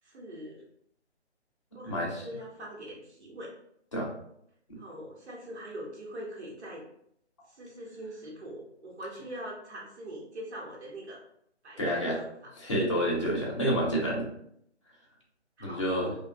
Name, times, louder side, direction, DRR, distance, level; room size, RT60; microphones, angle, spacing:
voice 1, 0.0-0.6 1.7-1.9 2.2-3.5 4.8-6.8 7.5-11.2 11.6-12.3 13.8-14.0 15.6-16.1, right 1 dB, 65° right, -3 dB, 1.0 m, -42 dB
voice 2, 1.8-2.3 3.9-4.1 4.7-4.8 11.8-12.2 12.6-14.3 15.6-16.1, equal, 25° left, -5 dB, 0.5 m, -29 dB
2.5 x 2.2 x 2.4 m, 0.72 s
figure-of-eight pair, 155°, 35 cm